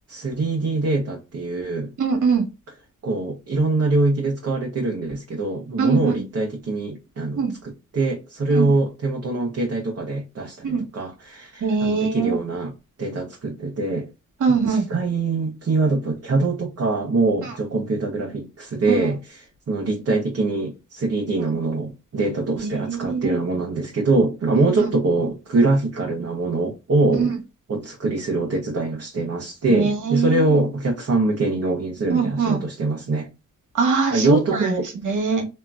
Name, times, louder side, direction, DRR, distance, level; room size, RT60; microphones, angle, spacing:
voice 1, 0.1-1.9 3.0-12.7 13.0-14.1 14.5-27.3 27.7-33.3 34.1-34.9, right 2 dB, 50° right, 0.9 m, -23 dB
voice 2, 2.0-2.4 5.8-6.2 7.4-7.5 8.5-8.7 10.6-10.8 11.6-12.4 14.4-14.9 18.9-19.0 22.6-23.4 27.1-27.3 29.7-30.6 32.1-32.6 33.7-34.7 35.0-35.4, right 5 dB, 70° right, 1.1 m, -22 dB
2.9 x 2.5 x 2.3 m
cardioid pair, 60°, 31 cm